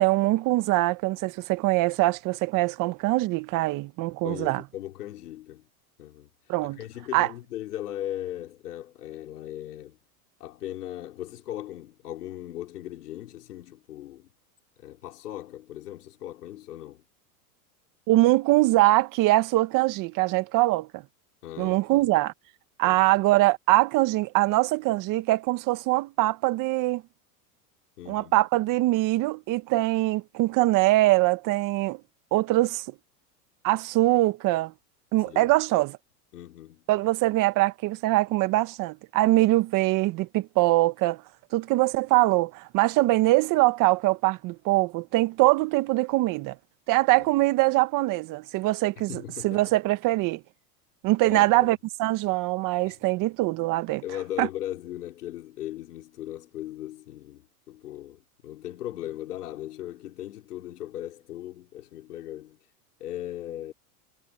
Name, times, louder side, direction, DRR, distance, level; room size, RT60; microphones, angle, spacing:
voice 1, 0.0-4.6 6.5-6.8 7.1-7.3 18.1-21.0 21.6-22.3 22.8-27.0 28.1-32.0 32.3-32.9 33.6-34.7 35.1-36.0 36.9-41.2 41.5-46.6 46.9-50.4 51.0-54.0 54.4-54.5, right 19 dB, 45° right, 1.9 m, -23 dB
voice 2, 4.2-5.7 6.0-6.3 6.6-10.0 10.4-14.3 14.8-17.0 21.4-22.1 22.8-23.1 28.0-28.4 35.3-35.5 36.3-36.8 47.1-47.3 49.0-49.7 51.2-51.7 52.8-53.0 54.0-62.6 63.0-63.7, left 13 dB, 85° left, 4.3 m, -38 dB
supercardioid pair, 125°, 45 cm